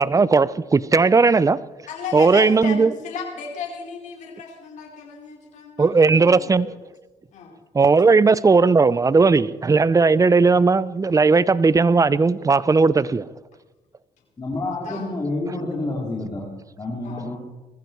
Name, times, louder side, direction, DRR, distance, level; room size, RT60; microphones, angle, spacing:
voice 1, 0.0-1.6 2.1-2.9 5.8-6.7 7.7-13.2, right 4 dB, 25° right, 0.8 m, -17 dB
voice 2, 1.9-6.8 7.3-7.6 14.6-15.1 17.0-17.2, left 5 dB, 70° left, 4.7 m, -35 dB
voice 3, 14.4-16.5 16.8-17.4, left 2 dB, 30° left, 4.4 m, -28 dB
21.0 x 14.5 x 4.7 m
supercardioid pair, 65°, 13 cm